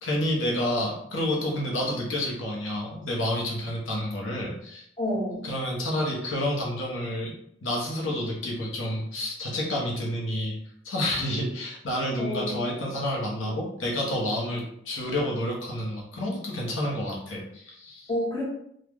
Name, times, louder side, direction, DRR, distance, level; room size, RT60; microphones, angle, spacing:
voice 1, 0.0-4.8 5.4-7.3 7.6-10.6 10.8-18.1, left 1 dB, 90° left, -2 dB, 0.9 m, -29 dB
voice 2, 5.0-5.5 12.2-12.9 13.4-13.5 18.1-18.4, left 1 dB, 25° left, -6 dB, 1.1 m, -30 dB
3.0 x 2.4 x 3.6 m, 0.71 s
head